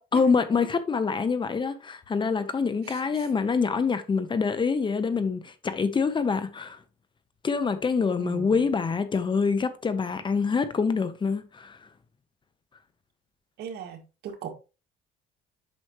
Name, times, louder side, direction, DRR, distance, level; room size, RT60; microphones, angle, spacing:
voice 1, 0.1-6.8 7.4-11.8, left 5 dB, 30° left, 0.9 m, -26 dB
voice 2, 8.2-8.6 13.6-14.5, right 7 dB, 75° right, 2.0 m, -38 dB
8.2 x 6.2 x 3.1 m
cardioid pair, 110°, 17 cm